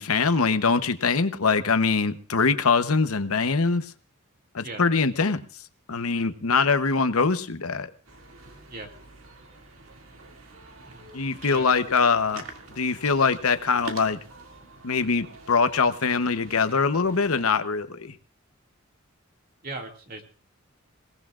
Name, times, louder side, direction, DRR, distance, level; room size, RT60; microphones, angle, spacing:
voice 1, 0.0-3.9 4.5-5.4 5.9-7.9 11.1-12.4 12.8-14.2 14.8-18.2, left 4 dB, 80° left, 10 dB, 1.0 m, -23 dB
sound 1, 8.0-17.5, right 3 dB, 65° right, 2.4 m, -46 dB
voice 2, 19.6-20.2, right 2 dB, 45° right, 3 dB, 2.3 m, -38 dB
28.0 x 18.0 x 2.5 m, 0.37 s
head